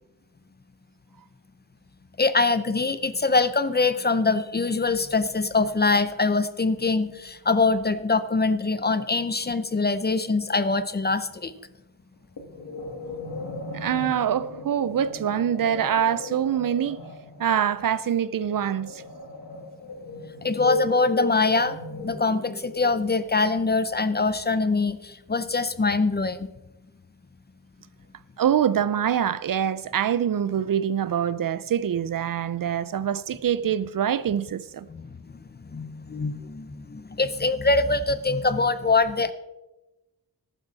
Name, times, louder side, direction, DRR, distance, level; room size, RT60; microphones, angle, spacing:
voice 1, 2.2-11.5 20.4-26.5 34.9-35.1 35.6-39.3, left 3 dB, 25° left, 0.6 m, -24 dB
sound 1, 12.4-23.7, left 2 dB, 80° left, 2.2 m, -36 dB
voice 2, 13.7-17.0 17.4-19.0 28.4-34.9 38.8-38.9, right 9 dB, 60° right, 0.5 m, -25 dB
14.5 x 12.0 x 4.0 m
wide cardioid pair, 125°, 39 cm